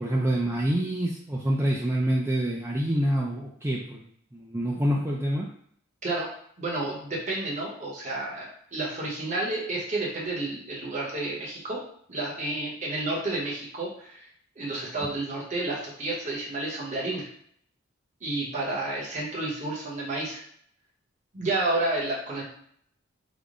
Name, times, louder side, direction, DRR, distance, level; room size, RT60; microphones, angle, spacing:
voice 1, 0.0-4.0 4.3-5.5, right 1 dB, 15° right, -4 dB, 0.3 m, -26 dB
voice 2, 6.6-11.8 12.1-14.3 14.6-17.3 18.2-20.4 21.3-22.4, right 2 dB, 35° right, -4 dB, 1.0 m, -30 dB
3.5 x 2.1 x 3.6 m, 0.64 s
head